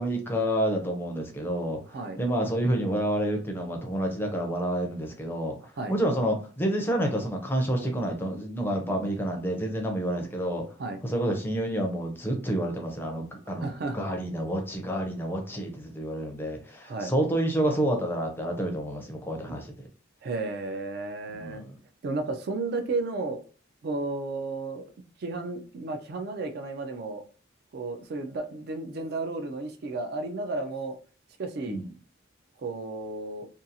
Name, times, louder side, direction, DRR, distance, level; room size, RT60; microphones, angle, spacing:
voice 1, 0.0-1.8 2.2-5.5 5.9-10.6 11.0-13.7 13.9-19.7 21.3-21.8 31.7-31.9, right 1 dB, 10° left, 0.5 m, -29 dB
voice 2, 1.9-2.2 5.8-6.0 10.8-11.0 13.5-14.0 16.9-17.1 19.5-19.6 20.2-21.6 22.0-23.4 23.8-24.9 25.2-27.2 27.7-31.0 31.4-31.8 32.6-33.5, right 3 dB, 55° right, 0.4 m, -33 dB
2.6 x 2.3 x 2.7 m
head